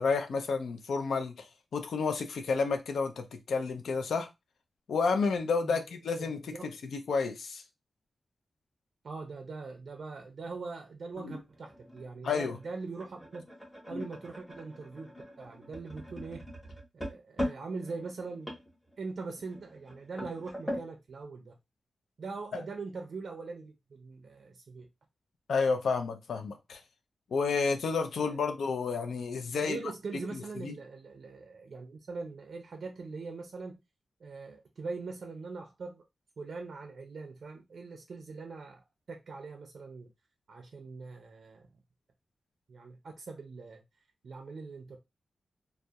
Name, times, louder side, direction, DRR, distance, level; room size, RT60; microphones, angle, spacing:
voice 1, 0.0-1.5 1.7-4.3 4.9-7.6 11.2-11.4 12.2-12.6 13.9-14.1 25.5-26.8 27.3-29.8 30.6-30.7, left 4 dB, 90° left, 0.4 m, -30 dB
voice 2, 6.2-6.7 9.0-13.4 13.9-16.5 16.9-18.6 19.0-21.6 22.2-24.9 28.2-28.4 29.5-33.8 34.2-36.1 36.4-40.1 40.5-41.7 42.7-43.8 44.2-45.0, right 4 dB, 55° right, 0.4 m, -42 dB
sound 1, 11.1-20.9, equal, 10° left, 0.8 m, -41 dB
2.3 x 2.0 x 2.6 m
wide cardioid pair, 165°, 0 cm